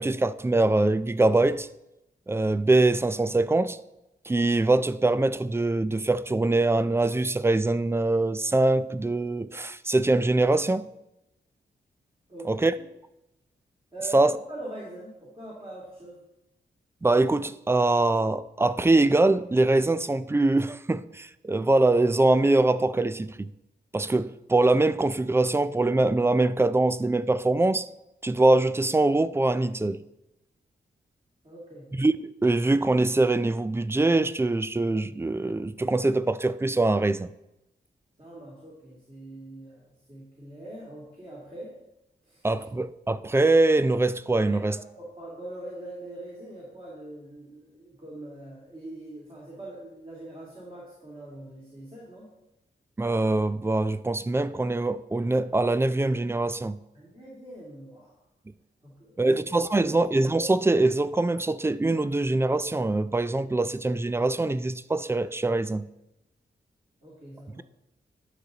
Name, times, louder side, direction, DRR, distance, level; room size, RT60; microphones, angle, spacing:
voice 1, 0.0-1.7 2.3-3.8 4.3-10.9 12.5-12.7 14.1-14.3 17.0-23.5 23.9-27.9 28.2-30.0 32.0-37.3 42.4-44.8 53.0-56.8 59.2-65.9, right 2 dB, 15° right, 0.3 m, -23 dB
voice 2, 12.3-12.7 13.9-16.2 31.4-31.9 38.2-41.7 42.2-42.4 44.4-52.3 56.9-58.1 58.8-59.5 59.9-60.0 67.0-67.6, right 1 dB, 30° right, 2.5 m, -42 dB
11.0 x 6.5 x 3.9 m
wide cardioid pair, 100°, 18 cm